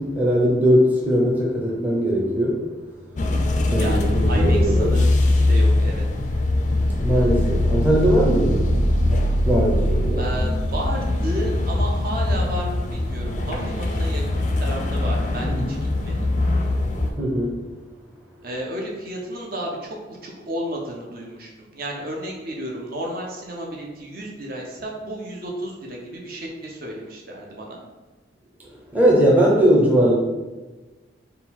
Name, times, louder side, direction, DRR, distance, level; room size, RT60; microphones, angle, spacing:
voice 1, 0.0-2.7 3.7-4.9 7.0-8.7 9.4-10.3 15.4-15.6 17.2-17.7 28.9-30.1, equal, 10° right, -4 dB, 0.6 m, -20 dB
sound 1, 3.2-17.1, left 1 dB, 40° left, 0.4 m, -21 dB
voice 2, 3.7-6.0 10.1-15.8 16.0-16.3 18.4-27.8, right 1 dB, 50° right, -1 dB, 0.7 m, -32 dB
3.9 x 2.3 x 4.2 m, 1.2 s
head